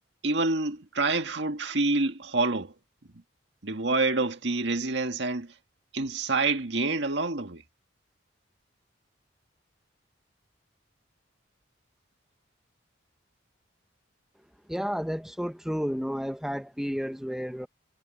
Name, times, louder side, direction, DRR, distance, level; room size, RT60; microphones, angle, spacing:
voice 1, 0.2-2.7 3.6-5.5 5.9-7.6, right 3 dB, 65° right, 1.9 m, -27 dB
voice 2, 14.7-17.7, equal, ahead, 0.9 m, -31 dB
head